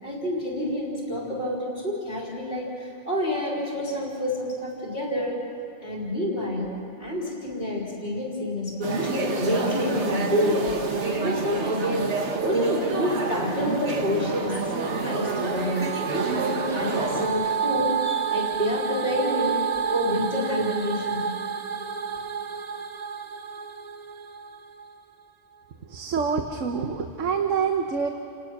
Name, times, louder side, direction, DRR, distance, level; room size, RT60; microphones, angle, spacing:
voice 1, 0.0-5.4 5.8-6.7 7.0-10.7 11.1-12.1 12.4-14.7 15.0-19.6 19.9-21.3, left 1 dB, 50° left, -3 dB, 4.1 m, -28 dB
sound 1, 8.8-17.3, right 3 dB, 65° right, 1.7 m, -28 dB
sound 2, 14.8-25.0, right 6 dB, 40° right, 0.8 m, -30 dB
voice 2, 25.8-28.1, right 6 dB, 85° right, 5 dB, 1.4 m, -26 dB
29.5 x 18.5 x 6.0 m, 2.9 s
omnidirectional pair, 1.3 m